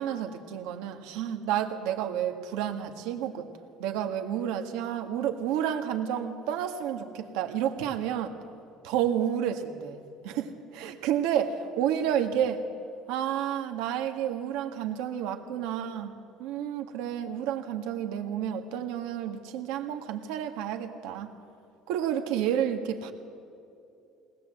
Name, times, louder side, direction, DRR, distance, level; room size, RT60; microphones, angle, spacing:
voice 1, 0.0-3.5 3.8-8.3 8.8-12.6 13.1-16.1 16.4-21.3 21.9-23.1, right 9 dB, 80° right, 5 dB, 1.8 m, -30 dB
22.0 x 19.5 x 7.9 m, 2.6 s
cardioid pair, 165°, 0 cm